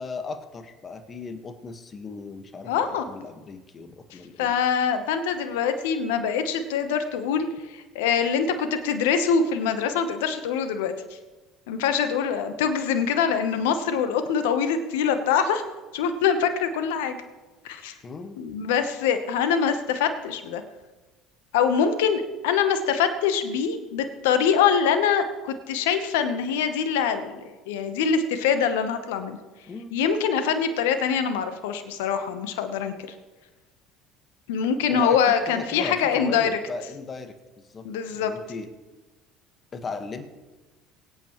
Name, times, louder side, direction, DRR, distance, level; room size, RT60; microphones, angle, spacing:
voice 1, 0.0-4.5 18.0-18.4 29.7-30.0 34.9-37.3 37.7-37.8 38.1-38.7 39.7-40.2, left 4 dB, 35° left, 7 dB, 1.6 m, -37 dB
voice 2, 2.7-3.1 4.4-10.9 11.7-15.6 15.9-17.2 17.6-17.9 18.4-20.6 21.5-29.4 29.9-32.9 34.5-36.5 37.8-38.3, left 7 dB, 80° left, 9 dB, 1.1 m, -24 dB
24.0 x 8.7 x 3.2 m, 1.2 s
hypercardioid pair, 75°, 0 cm